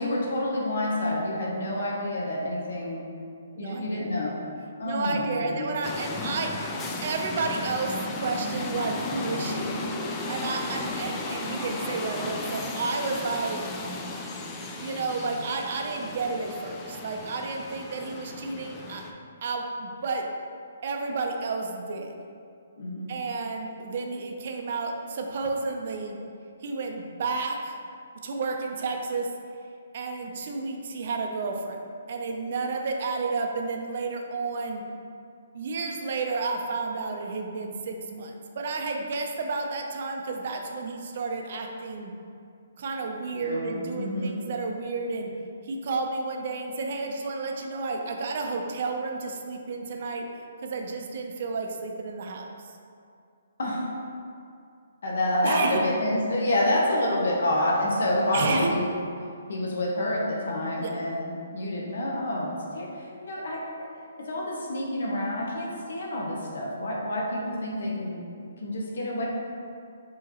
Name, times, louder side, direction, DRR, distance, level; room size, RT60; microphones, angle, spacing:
voice 1, 0.0-3.1 3.6-4.4 4.8-5.7 22.8-23.1 43.4-44.4 53.6-53.9 55.0-58.9 59.5-63.9 64.2-68.2 68.6-69.3, left 1 dB, 70° left, -3 dB, 0.9 m, -28 dB
voice 2, 3.5-4.1 4.8-6.5 7.0-9.8 10.3-13.6 14.8-19.0 19.4-20.2 20.8-22.1 23.1-26.2 26.6-27.8 28.2-29.3 29.9-31.8 32.1-34.8 35.5-42.1 42.8-45.3 45.6-50.2 50.6-52.5 55.4-55.8 58.3-58.7 60.8-60.9, right 3 dB, 50° right, 2 dB, 0.5 m, -31 dB
sound 1, 5.8-19.1, left 2 dB, 15° left, 0.3 m, -34 dB
4.8 x 2.9 x 2.9 m, 2.4 s
hypercardioid pair, 155°, 0 cm